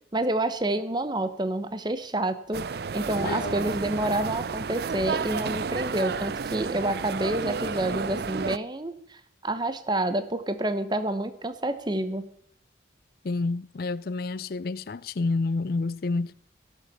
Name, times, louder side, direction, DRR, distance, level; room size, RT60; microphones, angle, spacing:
voice 1, 0.1-12.3, right 1 dB, 25° right, 0.9 m, -28 dB
sound 1, 2.5-8.6, right 5 dB, 55° right, 0.4 m, -31 dB
voice 2, 3.2-3.5 13.2-16.3, left 3 dB, 50° left, 0.4 m, -29 dB
18.0 x 7.1 x 6.9 m
head